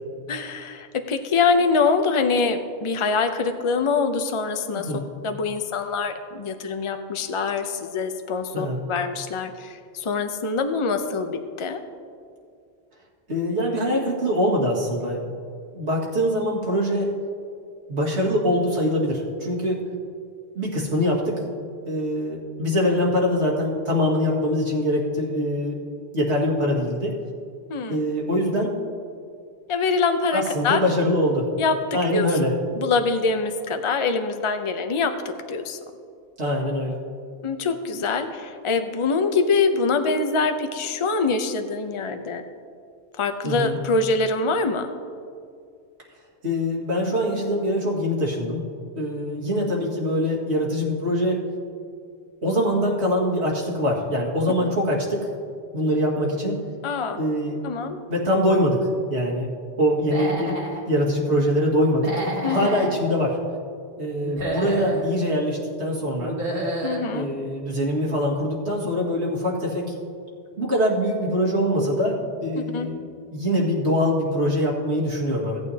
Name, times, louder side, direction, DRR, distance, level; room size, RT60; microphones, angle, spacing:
voice 1, 0.3-4.9 5.2-11.8 27.7-28.0 29.7-30.8 31.6-31.8 32.1-32.3 32.8-35.1 35.5-35.8 37.4-42.4 43.2-44.9 56.8-57.2 57.6-58.0 62.4-62.6 66.8-67.3 72.6-72.9, left 4 dB, 35° left, 7 dB, 0.6 m, -24 dB
voice 2, 4.7-5.0 8.5-8.8 13.3-15.2 15.7-17.1 17.9-19.8 20.6-21.4 21.8-25.8 26.1-27.2 27.9-28.7 30.3-31.5 31.9-32.5 36.4-37.0 43.4-43.8 46.4-48.7 49.0-51.4 52.4-55.3 55.7-56.6 57.2-57.6 58.1-58.8 59.1-59.5 59.8-60.6 60.9-63.4 64.0-66.4 67.1-69.9 70.6-72.2 72.4-73.0 73.3-75.6, equal, 85° right, -3 dB, 2.2 m, -23 dB
Human voice / Animal, 60.0-60.8 61.9-62.9 64.2-65.1 66.2-67.1, right 1 dB, 60° right, 1.7 m, -29 dB
16.5 x 8.9 x 2.8 m, 2.3 s
omnidirectional pair, 1.1 m